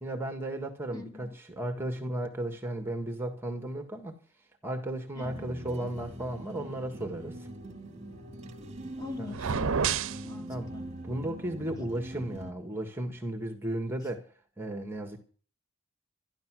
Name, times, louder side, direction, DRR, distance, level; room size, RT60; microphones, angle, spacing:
voice 1, 0.0-4.1 4.6-7.4 10.5-10.7 11.0-14.2 14.6-15.2, right 1 dB, 10° right, 1.6 m, -34 dB
voice 2, 0.9-1.3 5.1-5.5 9.0-10.9, left 4 dB, 15° left, 1.8 m, -44 dB
sound 1, 5.2-12.5, right 1 dB, 30° right, 2.2 m, -43 dB
sound 2, 9.3-10.2, right 6 dB, 60° right, 0.6 m, -28 dB
13.0 x 12.0 x 6.1 m
head